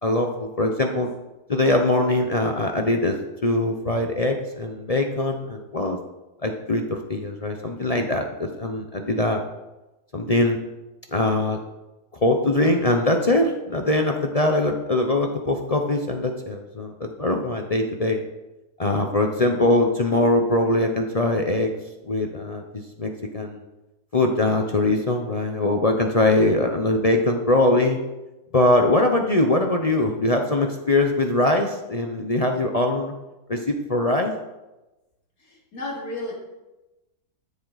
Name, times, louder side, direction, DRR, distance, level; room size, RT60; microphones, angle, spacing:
voice 1, 0.0-1.1 1.5-3.2 3.4-6.0 6.4-9.4 10.1-10.6 11.1-11.6 12.2-16.9 17.2-18.2 18.8-21.7 22.1-23.6 24.1-28.0 28.5-33.1 33.5-34.3, left 2 dB, 40° left, 3 dB, 0.5 m, -22 dB
voice 2, 35.4-36.3, left 2 dB, 65° left, -3 dB, 3.1 m, -34 dB
13.0 x 7.3 x 4.0 m, 1.0 s
omnidirectional pair, 1.7 m